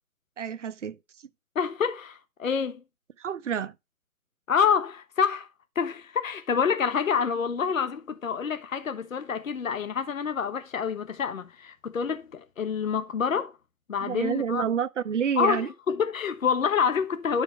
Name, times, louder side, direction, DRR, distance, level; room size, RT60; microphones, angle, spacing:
voice 1, 0.4-1.0 3.2-3.7 14.0-15.7, right 8 dB, 55° right, 0.7 m, -28 dB
voice 2, 1.5-2.8 4.5-5.5 5.8-13.5 13.9-14.7 15.4-17.4, left 6 dB, 60° left, 1.1 m, -27 dB
11.0 x 5.0 x 3.2 m
figure-of-eight pair, 155°, 44 cm